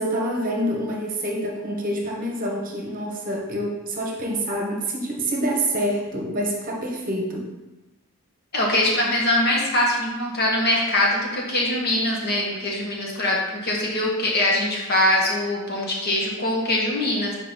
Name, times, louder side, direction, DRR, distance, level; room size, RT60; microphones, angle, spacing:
voice 1, 0.0-7.5, right 1 dB, 40° right, -1 dB, 0.9 m, -26 dB
voice 2, 8.5-13.4 13.6-17.4, left 1 dB, 45° left, -3 dB, 1.2 m, -22 dB
4.7 x 3.8 x 5.5 m, 1.1 s
head